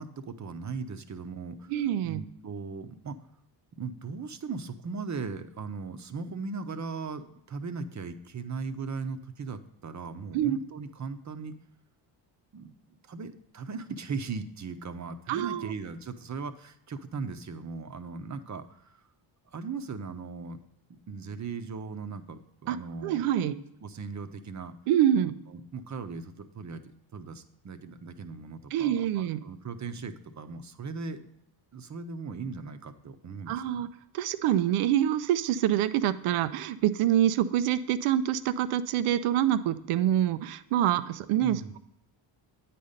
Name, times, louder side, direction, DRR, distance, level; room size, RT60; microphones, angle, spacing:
voice 1, 0.0-1.7 2.0-3.2 3.8-11.6 12.5-19.0 19.5-20.6 20.9-23.2 23.8-24.7 25.5-26.8 27.1-31.3 31.7-33.9 41.4-41.8, right 4 dB, 35° right, 9 dB, 0.8 m, -38 dB
voice 2, 1.7-2.2 10.3-10.6 15.3-15.7 22.7-22.8 23.0-23.5 24.9-25.4 28.7-29.4 33.5-33.9 34.1-41.8, right 11 dB, 80° right, 13 dB, 0.6 m, -26 dB
9.2 x 4.3 x 5.1 m, 0.80 s
cardioid pair, 70°, 49 cm